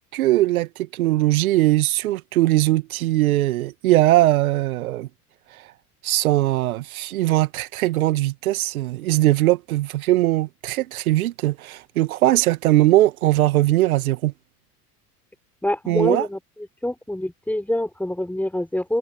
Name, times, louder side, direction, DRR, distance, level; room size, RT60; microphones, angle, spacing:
voice 1, 0.1-5.1 5.5-5.6 6.0-14.3 15.9-16.3, right 16 dB, 65° right, 1.9 m, -20 dB
voice 2, 15.6-19.0, left 1 dB, 5° left, 6.1 m, -26 dB
figure-of-eight pair, 70°, 46 cm